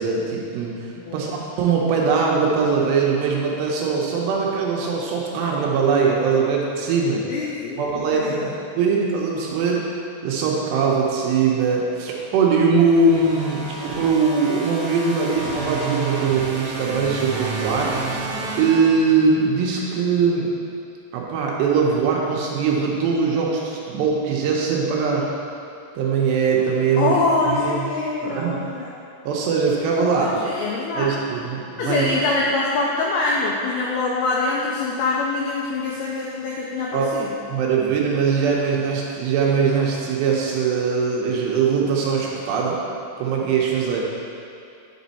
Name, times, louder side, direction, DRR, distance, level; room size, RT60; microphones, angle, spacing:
voice 1, 0.0-7.3 7.8-8.4 8.8-9.9 10.2-17.9 18.6-20.5 21.1-25.3 26.0-27.2 27.5-27.8 28.2-28.6 29.3-30.3 31.0-32.1 36.9-37.1 37.5-42.8 43.2-44.0, right 5 dB, 75° right, -2 dB, 2.8 m, -21 dB
voice 2, 1.0-1.3 7.3-8.5 27.0-28.9 30.0-31.2 31.8-37.4, left 3 dB, 85° left, -3 dB, 2.2 m, -24 dB
sound 1, 12.8-19.5, right 3 dB, 55° right, 2.3 m, -30 dB
9.6 x 5.3 x 4.1 m, 2.5 s
omnidirectional pair, 5.2 m